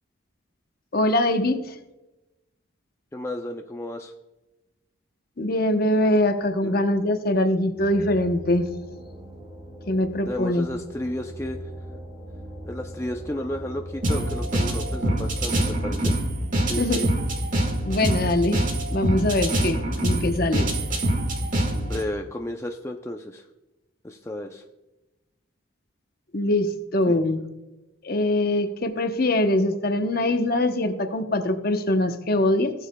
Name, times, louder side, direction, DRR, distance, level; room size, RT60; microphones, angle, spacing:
voice 1, 0.9-1.7 5.4-8.7 9.9-10.7 16.6-17.0 17.9-18.6 18.9-20.7 26.3-27.4 28.0-32.7, left 1 dB, 50° left, 7 dB, 0.8 m, -23 dB
voice 2, 3.1-4.1 6.6-6.8 10.2-11.7 12.6-16.2 16.7-17.1 21.7-23.5 24.0-24.6 27.1-27.3, left 1 dB, 15° left, 3 dB, 0.4 m, -33 dB
sound 1, 7.8-16.0, right 1 dB, 20° right, 2.9 m, -40 dB
sound 2, 14.0-22.0, right 1 dB, 40° right, 1.6 m, -25 dB
17.0 x 7.3 x 2.2 m, 1.0 s
head